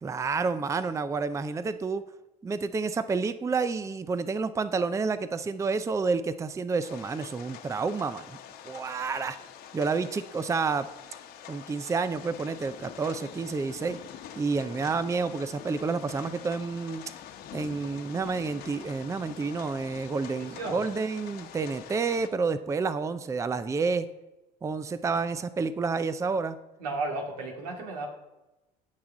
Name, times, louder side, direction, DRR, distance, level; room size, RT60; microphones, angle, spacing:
voice 1, 0.0-2.0 2.4-8.4 8.6-9.4 9.7-10.9 11.5-14.0 14.4-17.0 17.5-24.0 24.6-26.6, right 4 dB, 15° right, 13 dB, 0.5 m, -29 dB
sound 1, 6.8-22.3, left 9 dB, 55° left, 1.2 m, -46 dB
voice 2, 20.3-20.8 26.8-28.1, right 2 dB, 90° right, 2 dB, 2.3 m, -34 dB
16.0 x 5.8 x 3.8 m, 0.98 s
supercardioid pair, 95°, 19 cm